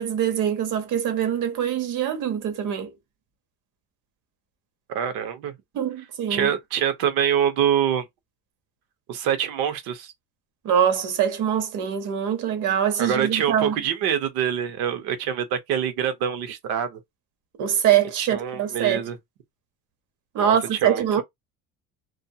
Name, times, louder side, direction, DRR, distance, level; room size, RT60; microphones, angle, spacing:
voice 1, 0.0-2.9 5.7-6.5 10.6-13.8 17.6-19.0 20.3-21.2, right 9 dB, 60° right, 1.0 m, -23 dB
voice 2, 4.9-5.5 6.3-8.0 9.1-10.1 13.0-17.0 18.2-19.2 20.4-21.2, right 9 dB, 80° right, 0.9 m, -25 dB
2.8 x 2.4 x 2.3 m
cardioid pair, 130°, 36 cm